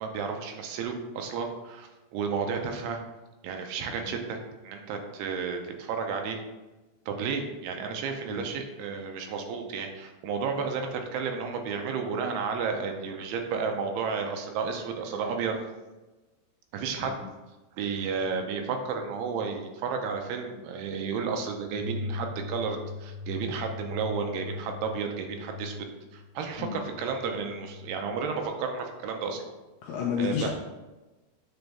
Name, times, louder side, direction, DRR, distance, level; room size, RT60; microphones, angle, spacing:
voice 1, 0.0-3.0 3.4-4.4 4.6-6.4 7.1-15.6 16.7-17.1 17.8-29.4 30.2-30.5, right 5 dB, 80° right, 4 dB, 2.7 m, -32 dB
sound 1, 21.6-28.5, left 4 dB, 60° left, 2.5 m, -40 dB
voice 2, 29.8-30.5, left 7 dB, 80° left, -2 dB, 2.0 m, -32 dB
9.2 x 4.5 x 3.5 m, 1.1 s
omnidirectional pair, 4.8 m